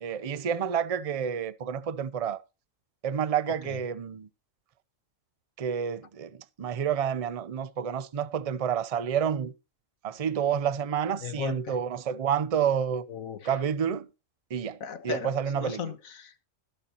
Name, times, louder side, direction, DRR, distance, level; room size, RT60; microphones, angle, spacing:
voice 1, 0.0-2.4 3.0-4.3 5.6-6.3 6.6-9.5 10.0-13.0 13.5-14.1 14.5-14.8 15.0-15.8, right 8 dB, 40° right, 0.5 m, -29 dB
voice 2, 3.5-3.8 11.2-11.8 13.1-13.6 14.8-16.4, left 7 dB, 85° left, 1.6 m, -38 dB
20.5 x 6.9 x 2.9 m
omnidirectional pair, 1.4 m